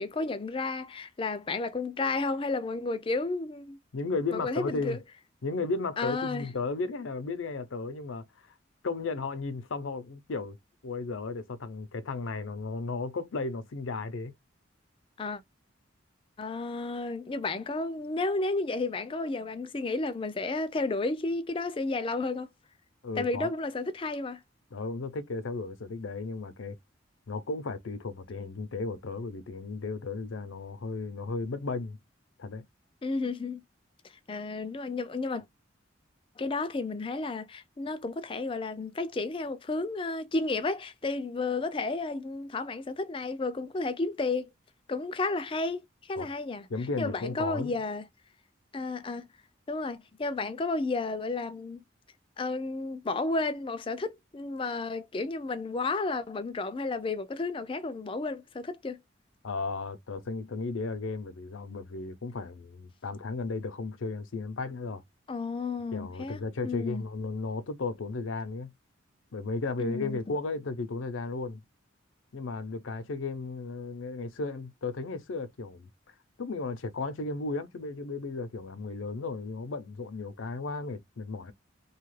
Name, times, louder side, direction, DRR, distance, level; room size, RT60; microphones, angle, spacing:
voice 1, 0.0-3.8 4.3-5.0 6.0-6.5 15.2-15.4 16.4-22.5 23.2-24.4 33.0-33.6 34.3-35.4 36.4-44.5 44.9-46.7 47.0-48.1 48.7-49.2 49.7-51.8 52.4-59.0 65.3-67.0 69.8-70.2, left 3 dB, 25° left, 0.4 m, -32 dB
voice 2, 3.9-5.0 5.4-8.2 8.8-10.6 10.8-14.3 23.0-23.5 24.7-26.8 27.3-32.0 32.4-32.6 46.2-46.3 46.7-47.8 59.4-65.0 65.9-68.7 69.3-71.6 72.3-75.9 76.4-81.5, left 3 dB, 85° left, 0.5 m, -34 dB
2.8 x 2.3 x 3.1 m
head